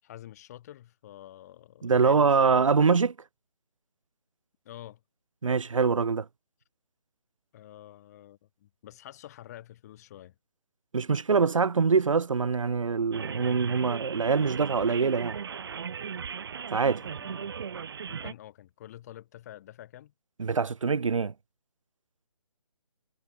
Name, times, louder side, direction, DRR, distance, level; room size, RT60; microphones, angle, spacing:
voice 1, 0.0-2.8 4.6-5.0 7.5-10.3 17.0-17.5 18.1-20.1, left 13 dB, 25° left, 6.8 m, -48 dB
voice 2, 1.8-3.1 5.4-6.3 10.9-15.4 16.7-17.0 18.1-18.2 20.4-21.3, right 5 dB, 60° right, 0.9 m, -24 dB
sound 1, 13.1-18.3, right 7 dB, 45° right, 1.6 m, -37 dB
figure-of-eight pair, 150°, 18 cm